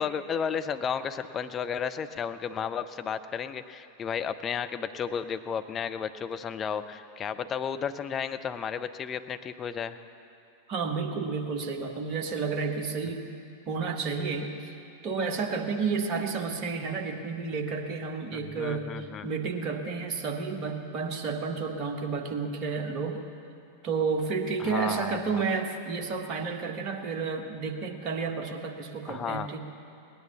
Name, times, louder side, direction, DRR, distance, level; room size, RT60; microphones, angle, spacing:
voice 1, 0.0-10.0 18.3-19.3 24.6-25.4 29.1-29.6, left 7 dB, 25° left, 9 dB, 0.6 m, -33 dB
voice 2, 10.7-13.2 13.7-14.8 15.0-23.2 23.8-29.6, right 4 dB, 35° right, 3 dB, 1.5 m, -31 dB
18.5 x 10.5 x 7.0 m, 2.6 s
figure-of-eight pair, 90°, 0 cm